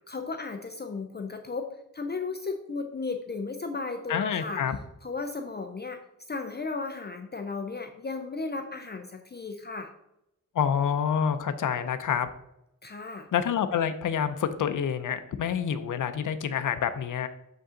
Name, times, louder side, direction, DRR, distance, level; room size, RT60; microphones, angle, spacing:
voice 1, 0.1-1.7 1.9-4.6 5.0-6.0 6.3-9.9 12.8-13.3, left 4 dB, 35° left, 5 dB, 0.5 m, -35 dB
voice 2, 4.1-4.8 10.6-12.3 13.3-17.3, left 8 dB, 90° left, 10 dB, 0.5 m, -27 dB
6.8 x 5.2 x 3.7 m, 0.85 s
wide cardioid pair, 130°, 31 cm